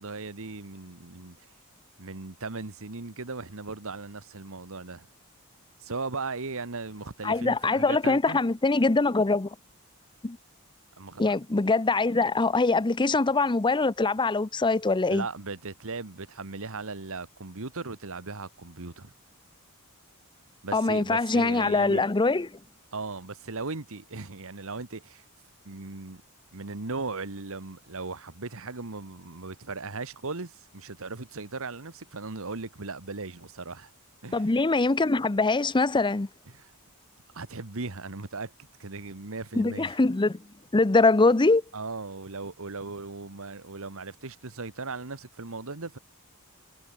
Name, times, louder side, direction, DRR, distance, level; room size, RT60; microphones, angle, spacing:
voice 1, 0.0-1.4 2.0-5.1 5.8-8.4 11.0-11.3 15.1-19.1 20.6-22.0 22.9-25.2 25.6-26.2 26.5-33.9 34.2-34.5 36.5-36.7 37.3-40.0 41.7-46.0, right 3 dB, 65° right, 1.6 m, -37 dB
voice 2, 7.2-9.5 10.2-10.4 11.2-15.2 20.7-22.5 34.3-36.3 39.6-40.4 40.7-41.6, left 3 dB, 20° left, 0.6 m, -23 dB
head